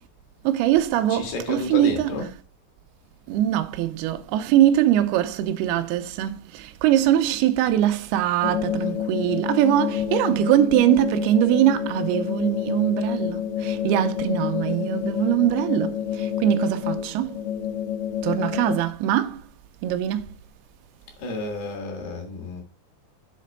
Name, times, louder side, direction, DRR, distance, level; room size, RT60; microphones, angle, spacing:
voice 1, 0.4-2.1 3.3-17.4 18.2-19.4 19.8-20.3, right 12 dB, 80° right, 2.5 m, -22 dB
voice 2, 1.1-2.3 21.2-22.6, left 2 dB, 65° left, 3.5 m, -31 dB
sound 1, 8.4-18.8, left 9 dB, 85° left, 2.3 m, -28 dB
7.4 x 4.2 x 5.4 m
omnidirectional pair, 4.9 m